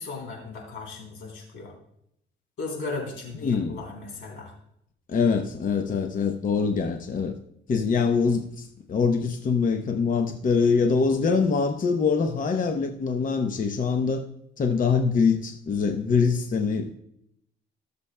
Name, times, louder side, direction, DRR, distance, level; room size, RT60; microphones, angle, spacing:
voice 1, 0.0-1.7 2.6-4.5, left 3 dB, 85° left, 0 dB, 3.4 m, -36 dB
voice 2, 3.4-3.8 5.1-7.3 7.7-14.2 14.6-17.0, left 5 dB, 40° left, 5 dB, 0.8 m, -24 dB
17.5 x 6.9 x 2.2 m, 0.75 s
cardioid pair, 90°, 20 cm